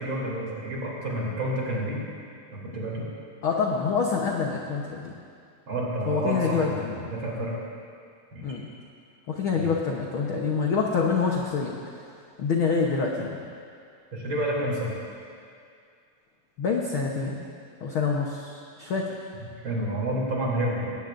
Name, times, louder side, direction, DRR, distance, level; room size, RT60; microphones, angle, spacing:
voice 1, 0.0-2.0 2.5-3.1 5.7-7.5 8.3-8.6 9.5-9.8 14.1-14.9 19.6-21.0, right 1 dB, 35° right, -5 dB, 3.6 m, -29 dB
voice 2, 3.4-5.1 6.1-7.1 8.4-8.7 9.3-11.8 12.4-13.4 16.6-17.5 17.8-19.2, left 5 dB, 80° left, -1 dB, 1.1 m, -26 dB
20.5 x 17.5 x 2.6 m, 2.3 s
omnidirectional pair, 3.9 m